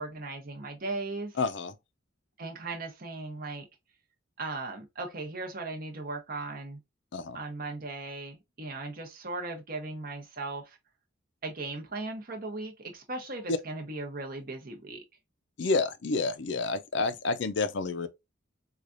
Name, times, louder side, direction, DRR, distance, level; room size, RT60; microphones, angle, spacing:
voice 1, 0.0-1.4 2.4-3.6 4.4-6.8 7.3-10.8 11.4-15.0, right 3 dB, 45° right, 0.9 m, -37 dB
voice 2, 1.4-1.7 7.1-7.4 13.5-13.6 15.6-18.1, left 3 dB, 60° left, 0.5 m, -29 dB
4.8 x 2.4 x 2.5 m
head